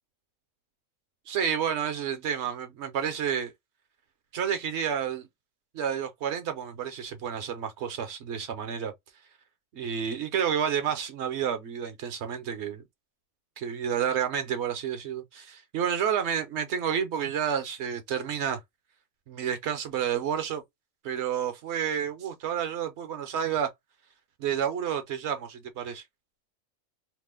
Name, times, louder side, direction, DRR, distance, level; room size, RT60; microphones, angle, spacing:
voice 1, 1.3-3.5 4.3-5.3 5.7-8.9 9.7-12.8 13.6-18.6 19.3-20.6 21.0-23.7 24.4-26.0, right 8 dB, 65° right, 0.8 m, -30 dB
2.9 x 2.0 x 3.4 m
omnidirectional pair, 1.4 m